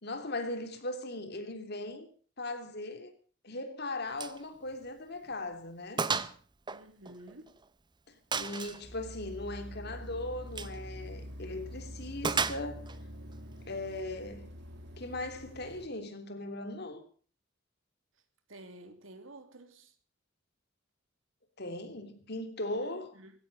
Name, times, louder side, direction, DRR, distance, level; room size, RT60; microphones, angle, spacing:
voice 1, 0.0-2.1 2.4-3.1 3.4-6.1 8.1-12.8 13.7-14.5 15.0-17.0 21.6-23.1, left 2 dB, 55° left, 3.3 m, -39 dB
Gunshot gunfire, 4.2-4.4 4.7-4.9 5.3-5.4 6.0-6.4 6.7-7.6 8.3-8.8 10.5-10.8 12.2-13.0, right 5 dB, 20° right, 0.8 m, -33 dB
voice 2, 6.7-7.6 18.5-19.9 22.7-23.3, right 1 dB, 80° right, 2.9 m, -51 dB
sound 1, 8.8-15.9, equal, 60° right, 3.6 m, -45 dB
19.0 x 16.0 x 4.2 m
head